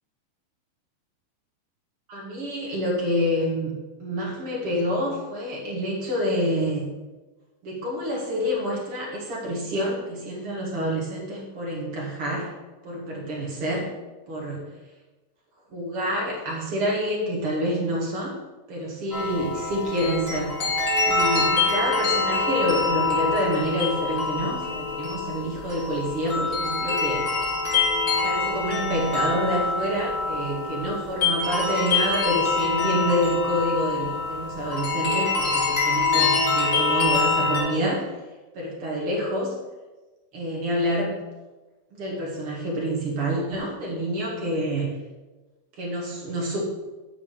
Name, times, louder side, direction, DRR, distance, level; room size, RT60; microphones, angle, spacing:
voice 1, 2.1-6.9 7.6-12.5 12.8-13.9 14.3-14.6 15.7-18.4 18.7-20.6 21.0-27.3 28.2-38.1 38.5-39.5 40.3-41.2 41.9-44.9 45.8-46.6, equal, 45° right, -3 dB, 1.9 m, -27 dB
sound 1, 19.1-37.6, left 4 dB, 25° left, 1.8 m, -25 dB
7.3 x 6.6 x 7.5 m, 1.2 s
omnidirectional pair, 5.3 m